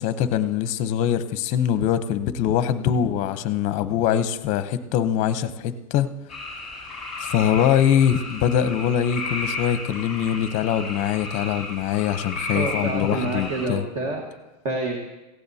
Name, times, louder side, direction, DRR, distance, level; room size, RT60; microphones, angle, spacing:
voice 1, 0.0-6.1 7.2-13.8, left 9 dB, 40° left, 12 dB, 0.7 m, -23 dB
sound 1, 6.3-13.7, left 2 dB, 5° right, 5.1 m, -33 dB
voice 2, 12.5-14.2 14.6-15.0, right 2 dB, 40° right, 2 dB, 1.4 m, -27 dB
17.5 x 15.5 x 2.8 m, 1.1 s
supercardioid pair, 150°, 18 cm